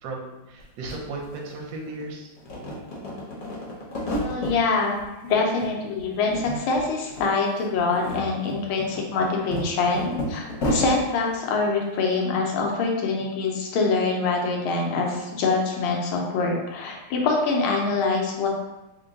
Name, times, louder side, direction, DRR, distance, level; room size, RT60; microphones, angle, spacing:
voice 1, 0.0-2.3, right 2 dB, 70° right, -1 dB, 1.3 m, -35 dB
sound 1, 0.6-0.7 0.9-2.0 2.4-4.6 5.0-5.7 6.0-6.9 7.1-7.3 7.8-11.0, left 1 dB, 55° left, 1.0 m, -31 dB
voice 2, 4.2-10.4 10.7-18.5, left 4 dB, 80° left, 0 dB, 1.5 m, -24 dB
3.6 x 2.1 x 3.9 m, 1.0 s
omnidirectional pair, 2.3 m